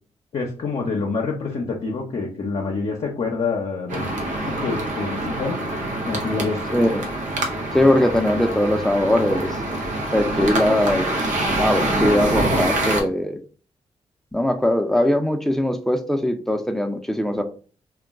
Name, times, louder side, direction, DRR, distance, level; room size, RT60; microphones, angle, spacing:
voice 1, 0.3-4.2 4.6-5.6 6.1-6.7, left 4 dB, 55° left, -1 dB, 0.6 m, -26 dB
sound 1, 3.9-13.0, right 1 dB, 80° right, 0.7 m, -25 dB
voice 2, 6.7-7.0 7.7-9.6 10.1-11.1 11.6-13.4 14.3-17.4, left 1 dB, 5° left, 6 dB, 0.6 m, -20 dB
2.3 x 2.1 x 3.6 m, 0.39 s
supercardioid pair, 50°, 13 cm